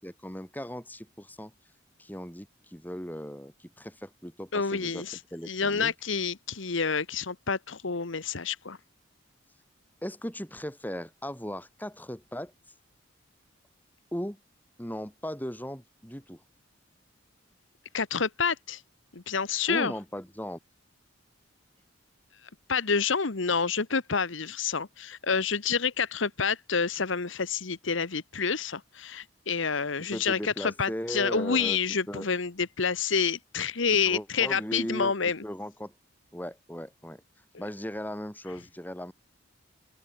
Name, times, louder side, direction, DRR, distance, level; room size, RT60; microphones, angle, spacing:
voice 1, 0.0-1.5 2.0-5.1 5.3-5.9 10.0-12.5 14.1-14.4 14.8-16.4 19.7-20.6 30.1-31.8 32.1-32.3 34.1-35.1 35.4-35.9 36.3-37.2 37.6-39.1, equal, 10° left, 7.9 m, -37 dB
voice 2, 4.5-5.2 5.5-8.8 17.9-18.8 19.1-19.9 22.7-35.4, left 5 dB, 65° left, 1.2 m, -28 dB
open air
head